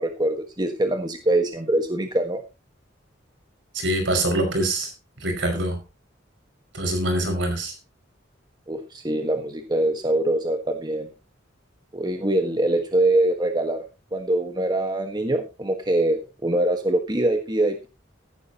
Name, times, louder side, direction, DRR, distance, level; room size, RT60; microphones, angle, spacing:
voice 1, 0.0-2.4 8.7-11.1 11.9-13.8 14.1-17.9, right 1 dB, 20° right, 1.5 m, -23 dB
voice 2, 3.7-4.9 5.2-5.8 6.7-7.7, right 1 dB, 70° right, 5.5 m, -24 dB
14.5 x 12.0 x 3.0 m
head